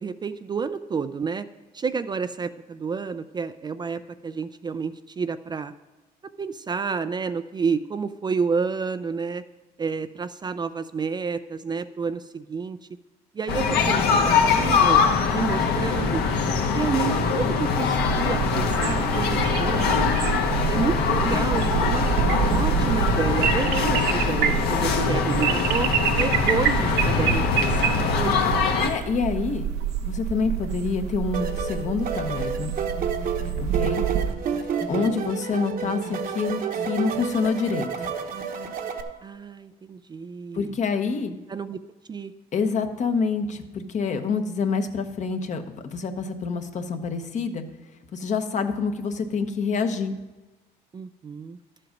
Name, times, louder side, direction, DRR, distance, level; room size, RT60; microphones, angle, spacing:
voice 1, 0.0-1.5 1.7-5.7 6.4-9.4 9.8-12.8 13.3-15.0 15.3-16.2 16.7-20.0 20.3-28.5 34.8-35.2 39.2-40.7 41.5-41.8 42.1-42.3 50.9-51.6, right 5 dB, 25° right, 11 dB, 0.4 m, -30 dB
sound 1, 13.5-28.9, left 5 dB, 70° left, 1.3 m, -23 dB
sound 2, 18.0-34.3, right 8 dB, 80° right, 0.9 m, -27 dB
voice 2, 28.8-29.7 30.0-32.7 33.6-34.0 34.9-38.1 40.5-41.4 42.5-47.6 48.1-50.1, left 5 dB, 45° left, 7 dB, 1.0 m, -27 dB
sound 3, 31.3-39.0, right 7 dB, 55° right, 1.1 m, -30 dB
11.5 x 7.7 x 5.1 m, 1.2 s
cardioid pair, 110°, 17 cm